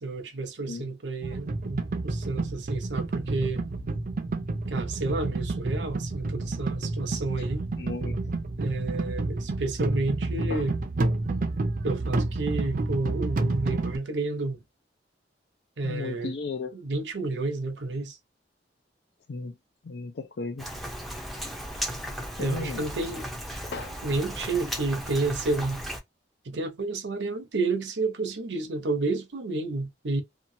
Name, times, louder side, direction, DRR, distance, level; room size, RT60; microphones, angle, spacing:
voice 1, 0.0-3.6 4.7-7.6 8.6-10.8 11.8-14.6 15.8-16.3 16.7-18.2 22.4-23.3 24.0-25.8 26.4-30.2, right 3 dB, 90° right, 0.7 m, -30 dB
sound 1, 1.2-14.0, right 2 dB, 50° right, 0.5 m, -30 dB
voice 2, 7.8-8.2 10.5-10.7 15.8-16.7 19.3-19.6 19.8-20.7 22.4-22.8 23.7-23.9, left 4 dB, 65° left, 0.5 m, -35 dB
Rain, 20.6-26.0, equal, ahead, 0.5 m, -36 dB
2.9 x 2.2 x 2.6 m
head